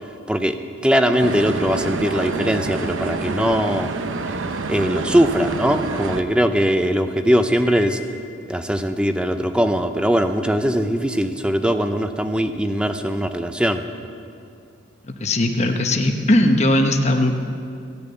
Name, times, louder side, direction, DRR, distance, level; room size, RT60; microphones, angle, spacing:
voice 1, 0.3-0.6 0.8-3.9 4.7-8.0 8.5-13.8, equal, 5° right, 8 dB, 0.5 m, -20 dB
sound 1, 1.2-6.2, right 3 dB, 65° right, 0.7 m, -27 dB
Piano, 7.6-8.9, left 4 dB, 45° right, 3.3 m, -40 dB
voice 2, 15.2-17.3, left 1 dB, 35° left, 4 dB, 1.0 m, -18 dB
16.0 x 6.8 x 9.0 m, 2.5 s
head